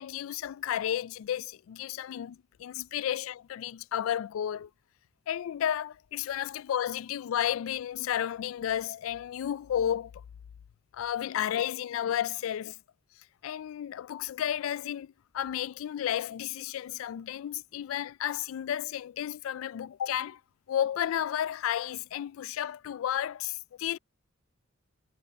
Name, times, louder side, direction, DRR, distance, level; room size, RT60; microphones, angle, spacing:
voice 1, 0.0-4.7 5.3-10.1 10.9-12.8 13.4-20.4 20.7-24.0, left 10 dB, 80° left, 0.3 m, -32 dB
head